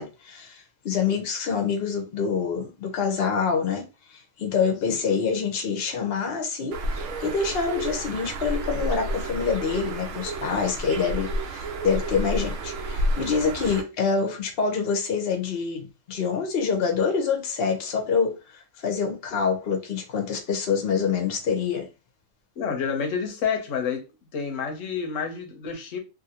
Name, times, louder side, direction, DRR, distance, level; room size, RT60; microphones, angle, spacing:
voice 1, 0.0-21.9, left 5 dB, 55° left, 0.9 m, -26 dB
Bird, 6.7-13.8, right 1 dB, 90° right, 1.0 m, -30 dB
voice 2, 22.6-24.0 24.3-26.0, left 6 dB, 80° left, 1.1 m, -29 dB
2.6 x 2.6 x 2.8 m
omnidirectional pair, 1.3 m